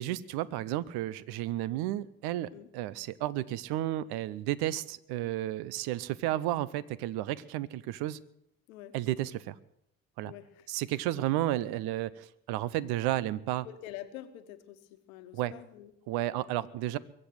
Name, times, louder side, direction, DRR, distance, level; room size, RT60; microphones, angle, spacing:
voice 1, 0.0-8.2 8.9-9.5 10.2-10.3 10.7-13.7 15.3-15.5 16.1-17.0, right 14 dB, 65° right, 20 dB, 0.8 m, -32 dB
voice 2, 10.2-10.7 11.1-11.2 13.6-15.9 16.3-16.4, left 12 dB, 80° left, 9 dB, 1.3 m, -47 dB
22.5 x 7.7 x 7.9 m, 0.75 s
hypercardioid pair, 55°, 41 cm